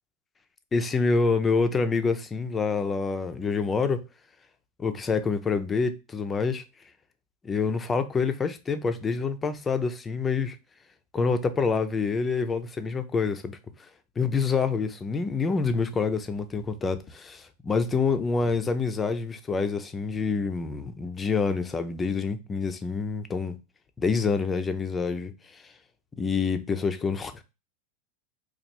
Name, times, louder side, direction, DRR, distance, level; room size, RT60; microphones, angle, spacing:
voice 1, 0.7-4.0 4.8-6.6 7.4-10.6 11.1-13.6 14.2-23.6 24.0-25.6 26.2-27.4, left 4 dB, 20° left, 0.5 m, -27 dB
3.0 x 2.4 x 4.3 m
hypercardioid pair, 115°, 0 cm